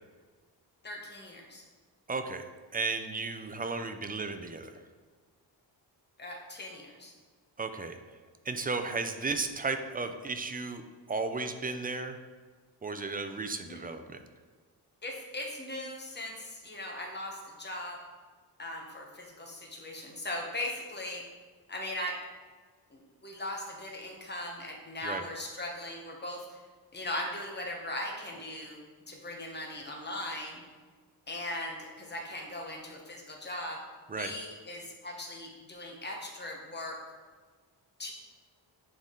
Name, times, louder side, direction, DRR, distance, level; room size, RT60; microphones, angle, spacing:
voice 1, 0.8-1.6 6.2-7.1 13.6-13.8 15.0-18.0 18.6-21.2 21.7-22.2 22.9-26.6 26.9-30.6 31.3-33.8 34.2-37.0 38.0-38.1, left 1 dB, 25° left, 0 dB, 1.1 m, -39 dB
voice 2, 2.1-2.5 2.7-4.8 7.6-8.0 8.5-10.8 11.1-12.2 12.8-14.2 25.0-25.2 34.1-34.3, right 3 dB, 25° right, 8 dB, 0.3 m, -34 dB
8.3 x 3.8 x 3.7 m, 1.5 s
wide cardioid pair, 125°, 41 cm